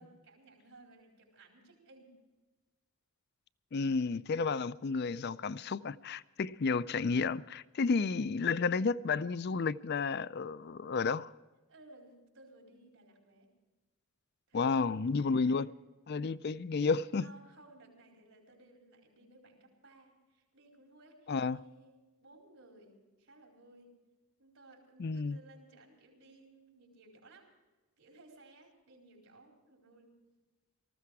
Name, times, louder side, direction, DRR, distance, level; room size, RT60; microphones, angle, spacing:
voice 1, 0.0-2.2 7.8-8.2 11.6-13.5 14.5-15.6 17.2-23.9 24.4-27.6 28.0-30.2, right 2 dB, 75° right, 4.6 m, -59 dB
voice 2, 3.7-11.3 14.5-15.7 16.1-17.3 21.3-21.6 25.0-25.4, left 4 dB, 50° left, 0.4 m, -31 dB
19.0 x 15.0 x 4.8 m
head